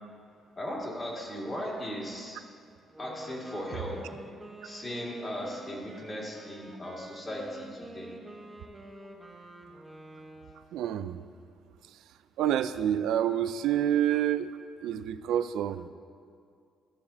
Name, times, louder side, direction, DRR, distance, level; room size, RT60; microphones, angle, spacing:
voice 1, 0.6-2.4 3.0-4.2 4.6-8.1, equal, 30° left, -3 dB, 2.1 m, -37 dB
Wind instrument woodwind instrument, 2.8-10.8, right 1 dB, 15° right, 1.2 m, -48 dB
voice 2, 10.7-11.2 12.4-15.9, right 10 dB, 85° right, 12 dB, 0.3 m, -28 dB
14.0 x 6.8 x 2.8 m, 2.3 s
cardioid pair, 90°, 0 cm